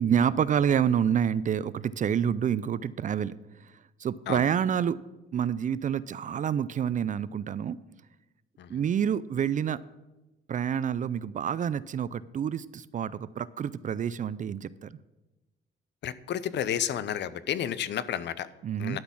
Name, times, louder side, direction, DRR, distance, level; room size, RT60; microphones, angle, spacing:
voice 1, 0.0-3.7 4.0-5.0 5.3-7.8 8.7-9.8 10.5-15.0 18.6-19.0, right 8 dB, 40° right, 17 dB, 0.4 m, -28 dB
voice 2, 16.0-18.5 18.8-19.0, left 10 dB, 60° left, 15 dB, 0.5 m, -31 dB
12.0 x 4.0 x 7.3 m, 1.1 s
cardioid pair, 90°, 20 cm